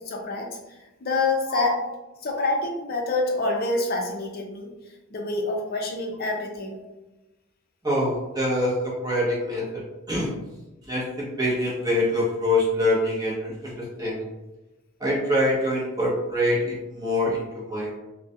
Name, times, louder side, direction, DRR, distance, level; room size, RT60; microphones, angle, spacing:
voice 1, 0.1-0.6 1.0-1.8 2.2-4.7 5.1-6.8, left 3 dB, 45° left, 1 dB, 0.5 m, -26 dB
voice 2, 7.8-9.8 10.1-10.3 10.9-14.3 15.0-18.0, left 1 dB, 20° right, -6 dB, 0.7 m, -25 dB
2.3 x 2.2 x 2.6 m, 1.0 s
head